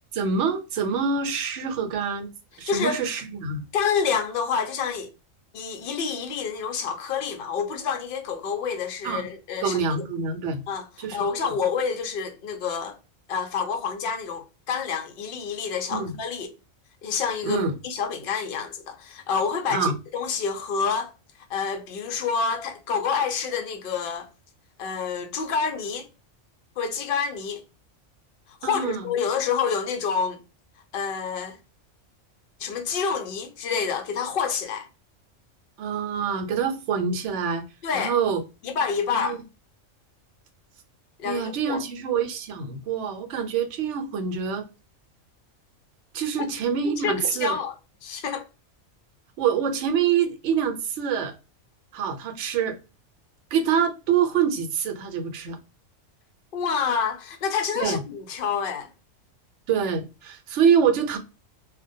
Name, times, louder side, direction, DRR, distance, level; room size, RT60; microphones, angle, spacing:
voice 1, 0.1-2.3 2.6-3.6 9.0-9.3 9.6-10.6 11.0-11.2 15.9-16.2 17.4-17.7 19.7-19.9 28.6-29.1 35.8-37.6 37.9-38.4 39.1-39.4 41.2-44.7 46.1-47.5 49.4-51.3 51.9-52.8 53.5-55.6 57.8-58.0 59.7-61.2, right 6 dB, 70° right, 0.8 m, -25 dB
voice 2, 2.7-3.0 3.7-5.1 5.5-9.8 10.7-10.9 11.1-13.0 13.3-16.5 17.0-21.1 21.5-24.3 24.8-26.1 26.8-27.6 28.6-30.4 30.9-31.6 32.6-34.9 37.8-38.2 38.6-39.4 41.2-41.8 47.0-47.7 48.0-48.4 56.5-58.9, left 6 dB, 65° left, 0.5 m, -28 dB
2.2 x 2.1 x 2.6 m
omnidirectional pair, 1.4 m